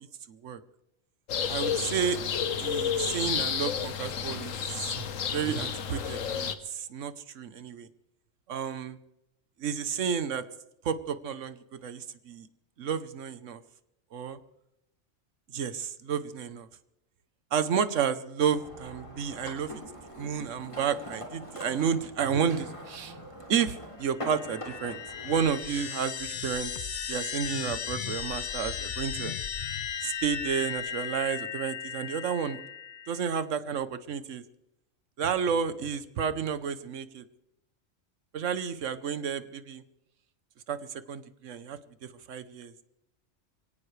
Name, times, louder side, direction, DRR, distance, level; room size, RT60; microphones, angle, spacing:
voice 1, 0.3-0.6 1.5-2.2 2.6-4.9 5.3-7.9 8.5-9.0 9.6-10.5 10.8-12.5 12.8-13.6 14.1-14.4 15.5-16.7 17.5-19.8 20.2-23.2 23.5-26.7 27.1-29.3 30.0-32.6 33.1-34.4 35.2-37.2 38.3-39.8 40.7-42.8, right 7 dB, 75° right, 13 dB, 1.3 m, -31 dB
sound 1, 1.3-6.5, left 7 dB, 85° left, 1.3 m, -31 dB
sound 2, 18.5-25.5, equal, 25° left, 3.0 m, -43 dB
sound 3, 24.1-33.4, left 8 dB, 50° left, 0.7 m, -36 dB
24.0 x 17.5 x 3.3 m, 0.85 s
omnidirectional pair, 1.3 m